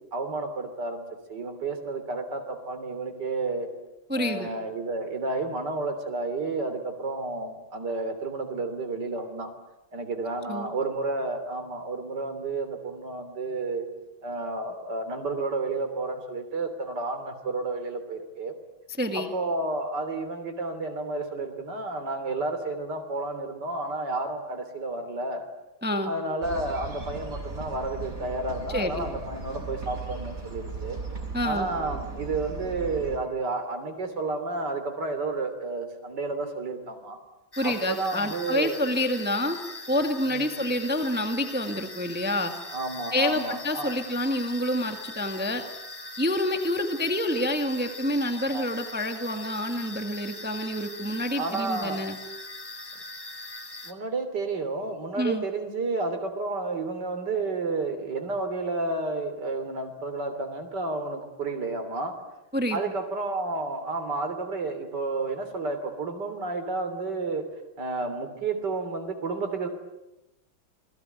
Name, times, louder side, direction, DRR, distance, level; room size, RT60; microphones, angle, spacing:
voice 1, 0.1-1.0 1.3-3.7 4.1-9.5 9.9-13.9 14.2-18.5 19.1-25.5 26.0-31.0 31.4-37.2 37.6-38.8 40.3-40.6 42.7-43.9 48.5-48.6 51.4-52.1 53.8-62.1 62.7-67.4 67.8-69.7, right 3 dB, 55° right, 7 dB, 3.8 m, -31 dB
voice 2, 4.1-4.5 10.5-10.7 19.0-19.3 25.8-26.1 28.7-29.0 31.3-31.7 37.6-39.6 39.9-42.5 43.1-45.6 46.2-52.2 55.2-55.4 62.5-62.8, left 1 dB, 5° right, 6 dB, 1.7 m, -28 dB
sound 1, 26.4-33.2, right 3 dB, 35° right, 6.0 m, -37 dB
sound 2, 37.5-53.9, left 2 dB, 10° left, 2.2 m, -41 dB
29.0 x 21.5 x 9.3 m, 0.95 s
omnidirectional pair, 2.2 m